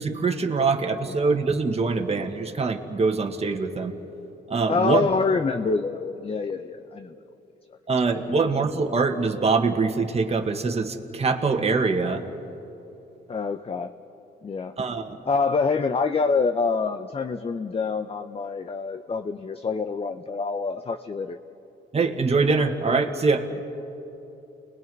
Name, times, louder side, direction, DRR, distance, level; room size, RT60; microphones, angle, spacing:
voice 1, 0.0-3.9 4.5-5.1 7.9-12.2 14.8-15.2 21.9-23.5, right 4 dB, 30° right, 4 dB, 1.7 m, -24 dB
voice 2, 4.7-7.1 8.3-8.4 13.3-13.9 14.4-14.7 15.3-21.4, left 4 dB, 30° left, 8 dB, 0.8 m, -26 dB
29.5 x 20.5 x 5.4 m, 2.9 s
cardioid pair, 90°, 20 cm